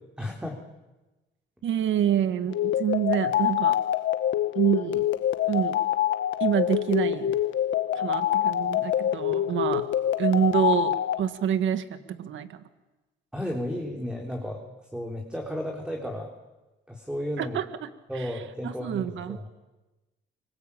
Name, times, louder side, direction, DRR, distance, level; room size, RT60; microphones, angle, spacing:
voice 1, 0.2-0.6 13.3-14.6 14.9-16.3 16.9-17.6 18.1-19.5, left 1 dB, 5° right, 1 dB, 4.4 m, -33 dB
voice 2, 1.6-3.8 4.6-5.1 5.5-5.8 6.4-7.3 7.9-9.8 10.2-12.6 17.4-18.3 18.6-19.4, right 9 dB, 75° right, 11 dB, 1.8 m, -27 dB
sound 1, 2.5-11.2, left 11 dB, 70° left, 1.3 m, -26 dB
25.0 x 24.0 x 8.8 m, 1.1 s
cardioid pair, 90°, 20 cm